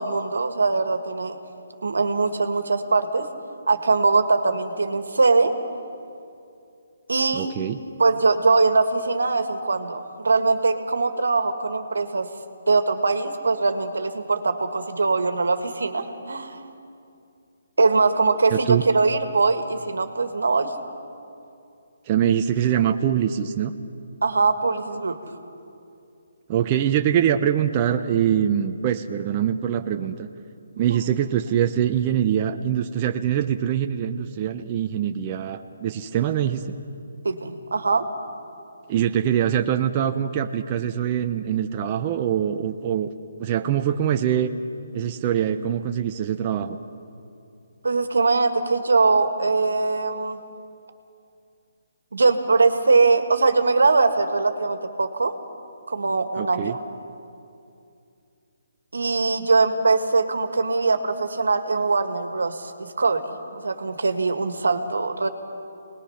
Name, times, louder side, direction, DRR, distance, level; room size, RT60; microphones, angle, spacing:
voice 1, 0.0-1.4 1.8-3.3 3.7-5.5 7.1-7.5 8.0-12.3 12.7-16.6 17.8-20.7 24.2-25.2 30.9-31.1 37.2-38.1 47.8-50.4 52.1-55.3 55.9-56.8 58.9-63.2 63.5-65.3, right 3 dB, 85° right, 8 dB, 1.7 m, -22 dB
voice 2, 7.3-7.8 18.5-18.8 22.1-23.7 26.5-30.3 30.8-36.7 38.9-43.1 43.4-44.5 44.9-46.8 56.4-56.8, right 9 dB, 30° right, 6 dB, 0.7 m, -23 dB
26.0 x 20.0 x 5.8 m, 2.5 s
hypercardioid pair, 160°, 0 cm